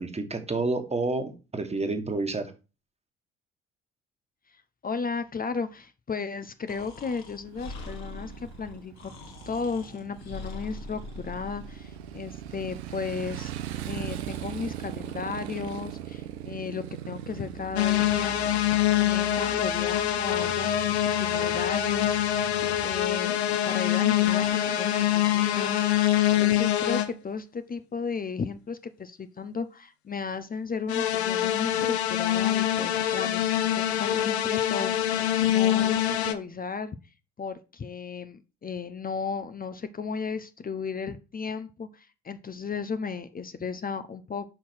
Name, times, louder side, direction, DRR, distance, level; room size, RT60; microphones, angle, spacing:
voice 1, 0.0-2.5, right 3 dB, 20° right, 6 dB, 1.6 m, -29 dB
voice 2, 4.5-8.9 9.5-13.5 13.9-18.4 19.0-22.2 22.8-26.1 26.4-37.0 37.4-44.4, left 5 dB, 25° left, 11 dB, 0.7 m, -34 dB
Breathing, 6.7-11.8, left 2 dB, 55° left, 1.8 m, -42 dB
Motorcycle, 7.5-23.2, right 11 dB, 80° right, 0.8 m, -40 dB
sound 1, 17.8-27.1 30.9-36.3, left 12 dB, 80° left, 0.6 m, -25 dB
5.5 x 4.5 x 6.2 m, 0.31 s
figure-of-eight pair, 45°, 32 cm